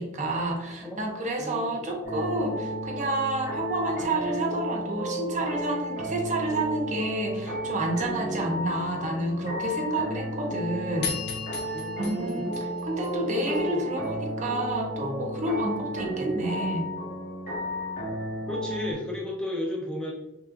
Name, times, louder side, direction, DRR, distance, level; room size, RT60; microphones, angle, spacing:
voice 1, 0.0-11.1 12.0-16.9, right 1 dB, 40° right, 1 dB, 0.6 m, -29 dB
voice 2, 1.4-1.9 8.2-8.7 11.7-12.5 13.3-13.9 18.5-20.1, left 2 dB, 5° left, -3 dB, 0.5 m, -34 dB
sound 1, 2.0-18.9, right 1 dB, 40° left, 1.3 m, -33 dB
sound 2, 11.0-13.6, left 6 dB, 60° left, 1.0 m, -36 dB
5.6 x 2.4 x 2.4 m, 1.0 s
head